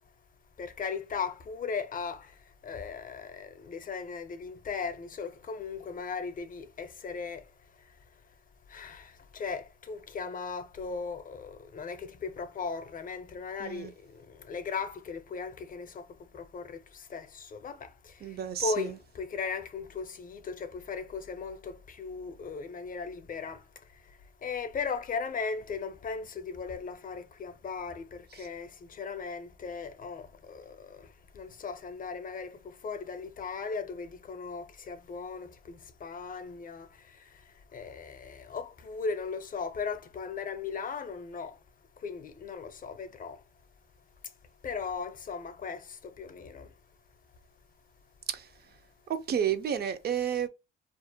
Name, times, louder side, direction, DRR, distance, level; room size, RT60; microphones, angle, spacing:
voice 1, 0.6-2.3 2.6-7.4 8.7-16.1 16.3-17.9 18.6-23.6 24.4-31.1 31.3-36.9 37.7-41.5 42.0-43.4 44.6-46.7, left 5 dB, 45° left, 0.5 m, -37 dB
voice 2, 13.6-13.9 18.2-19.0 28.3-28.5 48.3-48.5 49.1-50.5, right 9 dB, 55° right, 0.4 m, -31 dB
2.4 x 2.0 x 2.7 m
cardioid pair, 90°, 20 cm